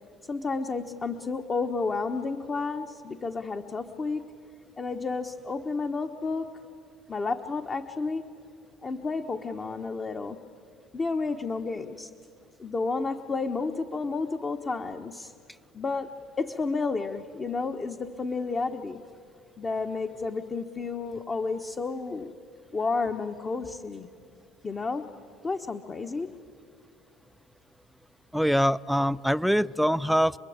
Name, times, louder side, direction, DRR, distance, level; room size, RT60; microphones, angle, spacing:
voice 1, 0.3-4.3 4.8-6.6 7.1-8.3 8.8-10.4 10.9-12.1 12.6-15.3 15.7-19.0 19.6-22.4 22.7-24.1 24.6-25.1 25.4-26.4, left 4 dB, 25° left, 4 dB, 1.2 m, -31 dB
voice 2, 28.3-30.4, equal, ahead, 15 dB, 0.5 m, -24 dB
28.0 x 21.5 x 8.8 m, 2.4 s
supercardioid pair, 90°, 0 cm